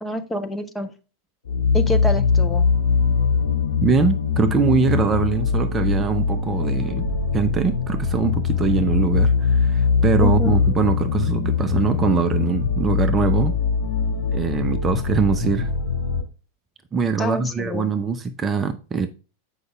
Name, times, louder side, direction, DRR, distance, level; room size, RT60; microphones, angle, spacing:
voice 1, 0.0-0.9 1.7-2.6 10.2-10.5 17.2-17.9, left 1 dB, 10° left, 0.9 m, -27 dB
sound 1, 1.5-16.2, left 5 dB, 65° left, 2.0 m, -22 dB
voice 2, 3.8-7.0 7.3-13.6 14.3-15.7 16.9-19.1, right 5 dB, 20° right, 0.6 m, -22 dB
7.9 x 5.3 x 3.3 m
figure-of-eight pair, 90°, 0 cm